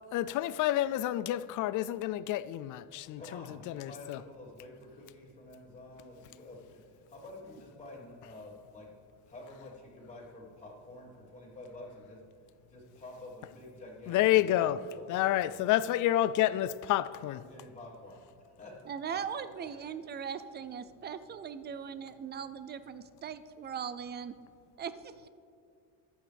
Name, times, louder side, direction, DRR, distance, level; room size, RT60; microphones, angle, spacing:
voice 1, 0.1-4.2 14.1-14.8 15.1-17.4, left 14 dB, 45° left, 0.4 m, -29 dB
voice 2, 3.2-8.9 9.3-12.2 12.7-15.5 17.3-18.2 18.6-18.8 19.1-19.2 19.6-19.7, left 2 dB, 15° left, 3.5 m, -49 dB
voice 3, 18.9-24.3 24.8-25.3, right 7 dB, 25° right, 0.4 m, -39 dB
24.5 x 8.8 x 3.5 m
cardioid pair, 140°, 45 cm